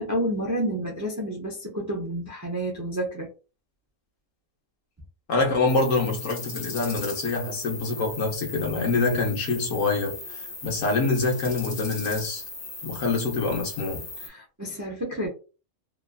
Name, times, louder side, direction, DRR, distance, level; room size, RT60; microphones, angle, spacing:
voice 1, 0.0-3.3 14.3-15.3, right 1 dB, 25° right, 0.4 m, -29 dB
voice 2, 5.3-10.2 10.6-12.4 12.8-14.0, left 3 dB, 75° left, 1.2 m, -25 dB
sound 1, 5.7-14.3, left 3 dB, 55° left, 1.2 m, -38 dB
3.0 x 2.3 x 2.3 m
omnidirectional pair, 1.4 m